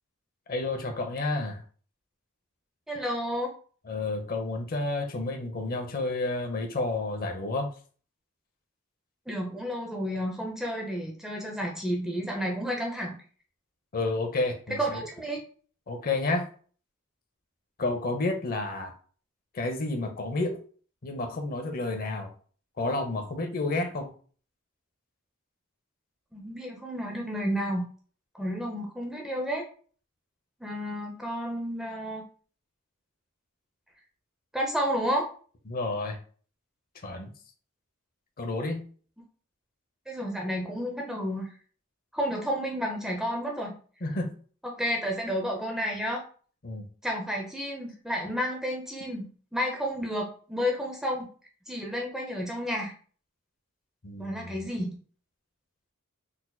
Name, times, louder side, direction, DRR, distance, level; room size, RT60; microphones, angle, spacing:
voice 1, 0.5-1.6 3.9-7.7 13.9-15.0 15.9-16.4 17.8-18.9 19.5-20.6 21.0-22.3 22.8-24.1 35.7-36.2 37.0-37.3 38.4-38.9 44.0-44.4 46.6-46.9 54.0-54.6, left 2 dB, 45° left, 4 dB, 0.6 m, -30 dB
voice 2, 2.9-3.5 9.3-13.2 14.8-15.4 26.3-27.8 28.3-29.6 30.6-32.2 34.5-35.3 40.1-41.5 42.1-43.7 44.6-46.2 47.0-51.3 51.7-52.9 54.2-55.0, equal, ahead, 0 dB, 0.5 m, -31 dB
3.9 x 2.8 x 2.2 m, 0.42 s
head